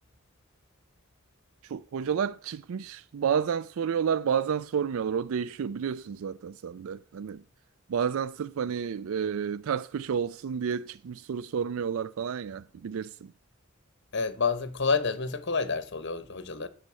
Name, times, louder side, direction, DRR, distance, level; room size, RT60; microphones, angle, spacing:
voice 1, 1.6-7.4 7.9-13.3, right 7 dB, 75° right, 0.4 m, -30 dB
voice 2, 14.1-16.7, left 4 dB, 55° left, 1.0 m, -29 dB
9.2 x 6.5 x 7.5 m
head